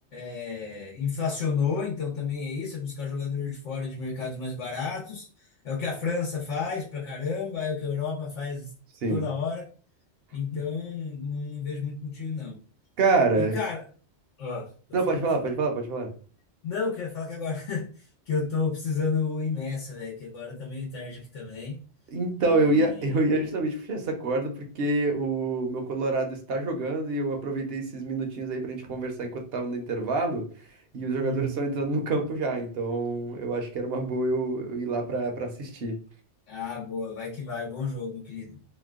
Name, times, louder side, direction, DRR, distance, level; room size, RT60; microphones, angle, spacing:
voice 1, 0.1-5.3 5.6-8.7 9.1-9.7 10.3-12.6 13.4-13.8 14.4-14.7 15.1-15.5 16.6-17.9 18.3-21.8 22.4-23.1 31.2-31.5 36.5-38.6, left 5 dB, 85° left, 1.1 m, -31 dB
voice 2, 13.0-13.6 14.9-16.1 22.1-30.5 30.9-36.0, right 3 dB, 60° right, 0.9 m, -27 dB
2.8 x 2.2 x 3.5 m
omnidirectional pair, 1.2 m